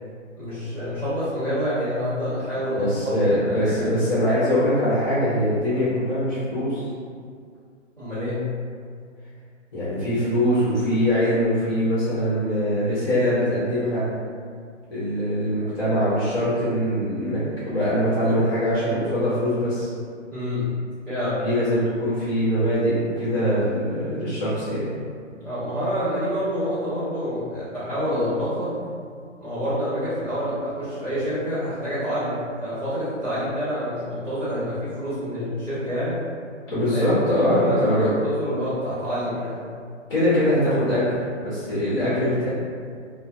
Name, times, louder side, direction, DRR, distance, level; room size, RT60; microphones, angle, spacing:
voice 1, 0.4-4.0 8.0-8.4 20.3-20.7 21.1-21.6 25.4-28.7 29.4-36.1 36.9-37.1 37.4-39.7 42.0-42.2, equal, ahead, -24 dB, 0.5 m, -27 dB
voice 2, 2.7-6.9 9.7-14.1 14.9-19.9 21.4-24.9 28.6-28.7 36.7-38.1 40.1-42.5, equal, 45° left, -11 dB, 0.9 m, -22 dB
2.3 x 2.0 x 2.8 m, 2.1 s
figure-of-eight pair, 140°, 37 cm